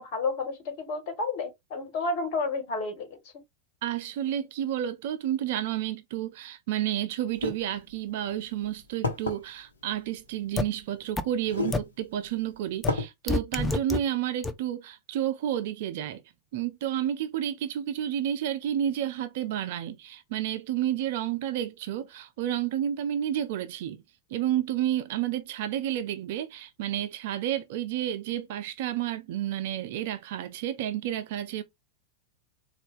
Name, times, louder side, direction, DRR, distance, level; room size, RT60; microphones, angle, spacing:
voice 1, 0.0-3.1, left 3 dB, 45° left, 1.5 m, -31 dB
voice 2, 3.8-16.2 16.5-24.0 24.3-31.6, right 11 dB, 50° right, 0.4 m, -31 dB
sound 1, 7.3-7.5 8.4-8.5 9.0-9.4 10.6-10.7 11.4-11.8 12.3-12.4 12.9-13.1, left 3 dB, 70° left, 1.0 m, -29 dB
sound 2, 10.6-10.7 11.2-11.3 11.7-11.8 12.8-12.9 13.3-14.0 14.4-14.5, left 3 dB, 10° left, 0.5 m, -26 dB
4.0 x 2.4 x 3.4 m
figure-of-eight pair, 90°, 0 cm